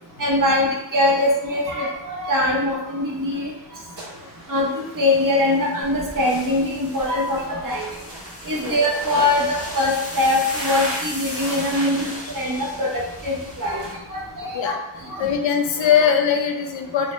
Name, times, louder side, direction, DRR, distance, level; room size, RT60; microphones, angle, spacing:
voice 1, 0.2-3.5 4.5-4.7 4.9-7.9 8.5-12.0 12.3-13.8 14.1-14.7, left 1 dB, 45° right, -3 dB, 0.9 m, -22 dB
sound 1, 4.0-13.9, right 1 dB, 65° right, 1.5 m, -36 dB
sound 2, 5.8-14.4, left 1 dB, 20° left, 0.6 m, -38 dB
voice 2, 15.2-17.1, left 8 dB, 80° left, 4 dB, 0.6 m, -21 dB
3.8 x 2.1 x 3.0 m, 0.90 s
wide cardioid pair, 130°, 45 cm